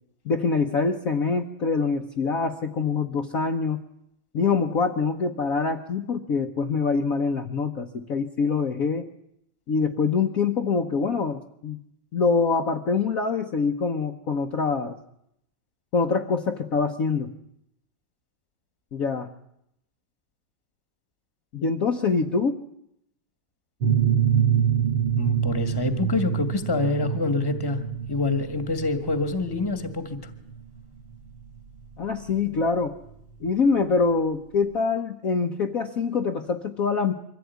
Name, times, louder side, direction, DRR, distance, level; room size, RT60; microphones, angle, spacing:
voice 1, 0.2-3.8 4.3-9.1 9.7-11.8 12.1-14.9 15.9-17.3 18.9-19.3 21.5-22.6 32.0-32.9 33.4-37.1, left 4 dB, 50° left, 3 dB, 1.2 m, -25 dB
sound 1, 23.8-33.2, right 8 dB, 70° right, 2.6 m, -26 dB
voice 2, 25.2-27.8 28.1-30.2, left 3 dB, 10° left, 9 dB, 1.5 m, -26 dB
23.5 x 15.5 x 9.4 m, 0.78 s
omnidirectional pair, 2.3 m